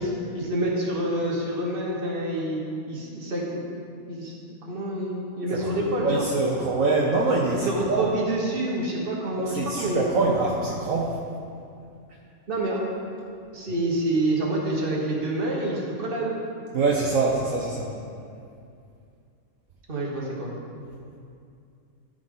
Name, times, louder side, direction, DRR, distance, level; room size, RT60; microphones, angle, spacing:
voice 1, 0.0-2.6 2.9-3.7 4.1-4.3 4.6-6.2 7.6-10.0 12.5-12.8 13.5-16.4 19.9-20.5, right 1 dB, 40° right, -3 dB, 1.6 m, -27 dB
voice 2, 5.5-8.1 9.4-11.2 16.7-18.0, right 3 dB, 70° right, -2 dB, 1.1 m, -24 dB
13.5 x 5.1 x 3.9 m, 2.4 s
omnidirectional pair, 1.5 m